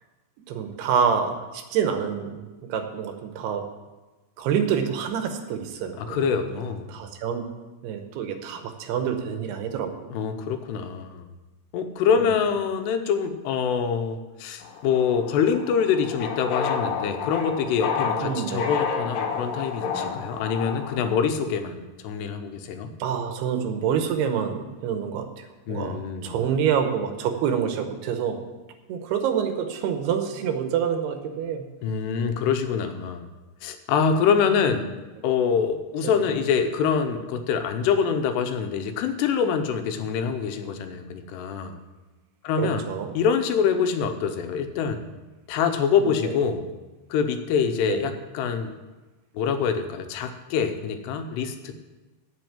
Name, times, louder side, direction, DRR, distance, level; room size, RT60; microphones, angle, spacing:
voice 1, 0.5-3.6 4.4-6.6 6.9-7.5 7.8-10.1 12.2-12.3 18.2-18.7 23.0-26.0 26.2-28.5 28.9-31.6 36.0-36.1 42.6-43.1 46.0-46.4 47.9-48.0, right 7 dB, 80° right, 6 dB, 3.0 m, -27 dB
voice 2, 6.0-6.9 10.1-11.2 11.7-22.9 25.7-26.4 31.8-33.3 33.6-34.9 35.2-41.8 42.4-42.9 43.2-45.1 45.5-46.7 47.1-48.7 49.3-51.8, left 6 dB, 85° left, 7 dB, 3.0 m, -25 dB
sound 1, 14.6-21.1, left 6 dB, 70° left, 2.5 m, -30 dB
8.1 x 7.5 x 8.7 m, 1.2 s
omnidirectional pair, 4.7 m